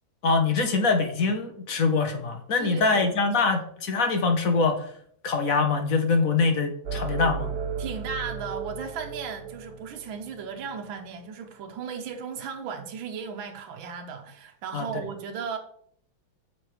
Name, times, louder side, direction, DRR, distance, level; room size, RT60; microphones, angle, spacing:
voice 1, 0.2-4.9 5.2-7.5 14.7-15.0, left 4 dB, 50° left, 1.2 m, -24 dB
voice 2, 2.6-3.6 7.8-15.6, right 6 dB, 80° right, 1.7 m, -36 dB
sound 1, 6.9-10.9, right 5 dB, 60° right, 1.2 m, -35 dB
8.6 x 6.7 x 3.2 m
omnidirectional pair, 2.2 m